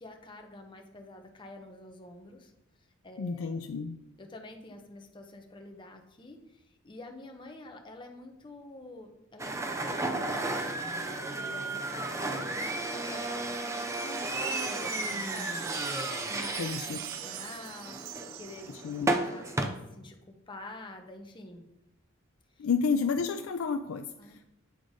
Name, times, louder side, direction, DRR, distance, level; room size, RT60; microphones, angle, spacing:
voice 1, 0.0-2.5 3.0-3.6 4.2-10.6 10.9-18.9 19.3-21.7 24.2-24.4, left 2 dB, 25° left, 3 dB, 0.8 m, -48 dB
voice 2, 3.2-4.0 16.6-17.0 18.7-19.1 22.6-24.4, left 5 dB, 75° left, 7 dB, 0.4 m, -31 dB
sound 1, 9.4-19.7, right 2 dB, 15° right, 0.5 m, -33 dB
Wind chime, 13.8-19.1, right 14 dB, 75° right, 0.3 m, -43 dB
8.0 x 3.9 x 4.9 m, 0.88 s
head